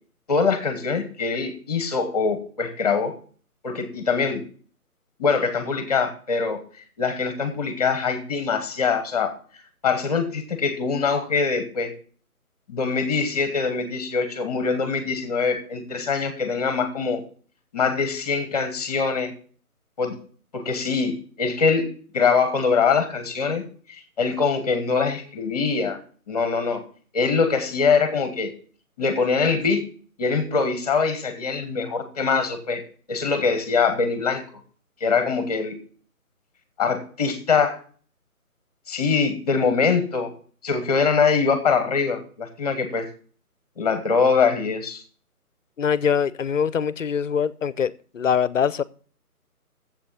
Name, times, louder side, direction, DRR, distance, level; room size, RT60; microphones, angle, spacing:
voice 1, 0.3-3.1 3.6-4.4 5.2-6.6 7.0-9.3 9.8-11.9 12.7-17.2 17.7-19.3 20.0-20.2 20.5-21.9 22.1-23.6 23.9-26.0 26.3-26.8 27.1-28.5 29.0-29.8 30.2-32.8 33.1-34.4 35.0-35.8 36.8-37.8 38.9-40.3 40.6-43.1 43.8-45.0, left 5 dB, 25° left, 1.2 m, -23 dB
voice 2, 45.8-48.8, left 7 dB, 55° left, 0.7 m, -23 dB
7.6 x 6.8 x 7.1 m
figure-of-eight pair, 155°, 45 cm